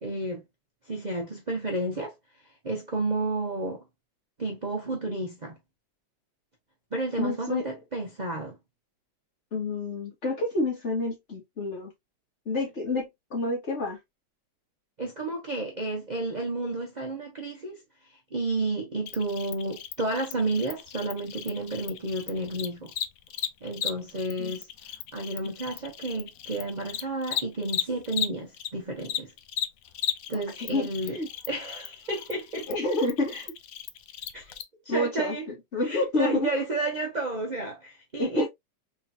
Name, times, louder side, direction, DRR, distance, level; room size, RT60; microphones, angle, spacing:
voice 1, 0.0-0.4 0.9-2.1 2.6-3.8 4.4-5.6 6.9-8.6 15.0-17.8 18.3-22.9 23.6-24.7 25.1-29.3 30.3-31.2 31.5-32.7 34.3-34.5 34.8-35.5 35.8-38.5, right 2 dB, 35° right, 0.7 m, -31 dB
voice 2, 7.2-7.6 9.5-11.9 12.5-14.0 24.4-24.6 25.4-25.5 30.6-31.3 32.7-33.5 34.9-35.4 35.7-36.5 38.2-38.5, left 2 dB, 40° left, 1.7 m, -28 dB
Cricket, 19.1-28.7 29.0-34.6, left 9 dB, 70° left, 0.8 m, -35 dB
3.7 x 3.4 x 2.6 m
omnidirectional pair, 1.9 m